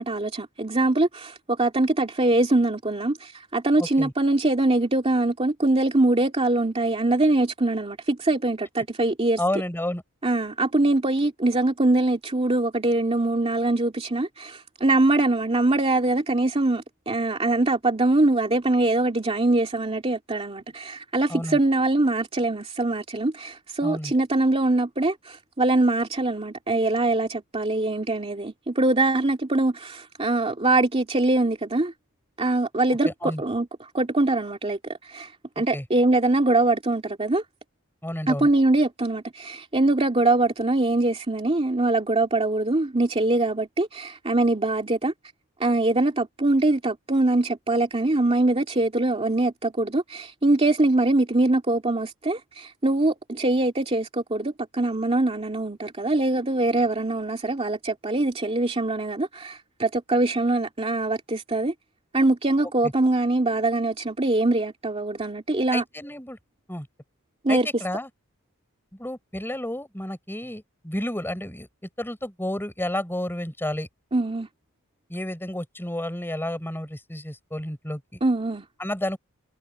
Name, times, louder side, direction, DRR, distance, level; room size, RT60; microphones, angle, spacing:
voice 1, 0.0-9.6 10.2-31.9 32.4-37.4 38.3-45.1 45.6-61.7 62.1-65.8 67.4-67.7 74.1-74.5 78.2-78.6, right 2 dB, 25° right, 2.4 m, -23 dB
voice 2, 3.8-4.1 9.4-10.0 21.3-21.6 23.8-24.1 32.9-33.4 35.7-35.8 38.0-38.5 62.8-62.9 65.7-66.4 66.7-66.9 67.5-68.1 68.9-71.7 72.0-73.9 75.1-78.2 78.8-79.2, left 1 dB, 10° left, 6.5 m, -31 dB
head